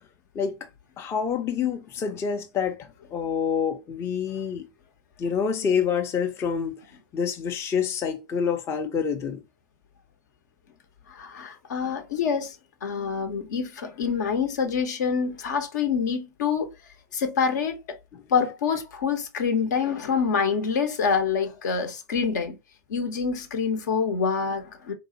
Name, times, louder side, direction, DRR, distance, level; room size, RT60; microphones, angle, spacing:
voice 1, 1.0-4.7 5.2-6.8 7.1-9.4, left 6 dB, 25° left, 0.5 m, -27 dB
voice 2, 11.1-16.7 17.1-18.0 18.3-22.6 22.9-24.9, left 6 dB, 65° left, 0.8 m, -26 dB
3.8 x 2.6 x 2.6 m
figure-of-eight pair, 90°, 11 cm